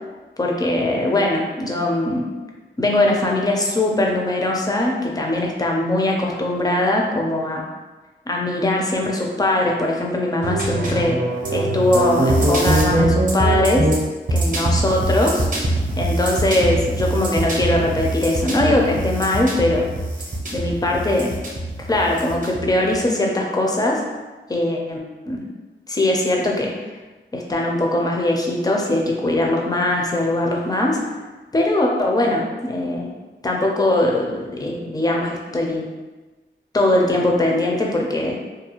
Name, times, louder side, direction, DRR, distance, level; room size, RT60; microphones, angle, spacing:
voice 1, 0.4-2.3 2.8-7.6 8.3-11.2 11.5-13.9 14.3-15.5 16.0-19.9 20.5-21.4 21.8-24.1 24.5-25.4 25.9-26.8 27.3-31.0 31.5-33.1 33.4-35.9 36.7-38.4, left 1 dB, 20° left, -1 dB, 0.4 m, -21 dB
sound 1, 10.4-23.0, right 1 dB, 45° right, 0.6 m, -22 dB
2.4 x 2.1 x 2.9 m, 1.2 s
wide cardioid pair, 130°, 19 cm